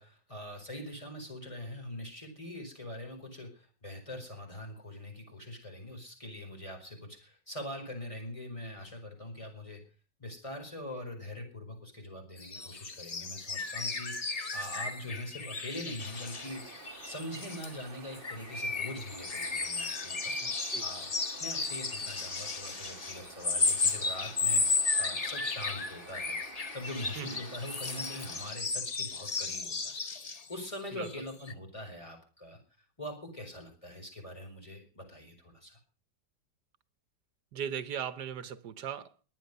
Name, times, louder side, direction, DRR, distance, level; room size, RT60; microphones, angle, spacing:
voice 1, 0.0-9.8 10.2-16.6 17.0-20.3 20.8-21.1 21.4-24.6 25.0-26.4 26.7-30.0 30.5-32.6 33.0-35.8, left 1 dB, 15° left, 5.0 m, -43 dB
sound 1, 12.4-17.8 18.1-30.8 31.0-31.2 31.5-31.6, left 4 dB, 35° left, 0.6 m, -34 dB
sound 2, 16.0-28.5, right 4 dB, 35° right, 1.3 m, -51 dB
voice 2, 20.4-20.9 27.2-27.4 30.9-31.1 37.5-39.1, right 8 dB, 75° right, 1.6 m, -38 dB
21.5 x 9.0 x 6.7 m
omnidirectional pair, 1.9 m